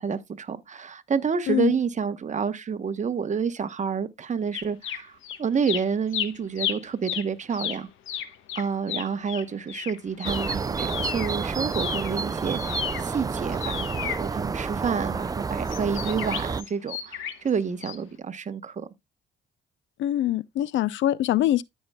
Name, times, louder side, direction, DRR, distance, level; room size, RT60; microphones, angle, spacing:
voice 1, 0.0-5.1 5.4-7.9 8.5-18.9, right 6 dB, 35° right, 1.0 m, -29 dB
sound 1, 4.5-5.4 5.6-11.4 11.7-14.9 15.7-17.5 17.8-18.0, left 10 dB, 90° left, 1.2 m, -33 dB
sound 2, 10.2-16.6, right 4 dB, 20° right, 0.3 m, -30 dB
voice 2, 20.0-21.6, left 13 dB, 75° left, 0.5 m, -24 dB
14.0 x 5.5 x 2.2 m
cardioid pair, 90°, 20 cm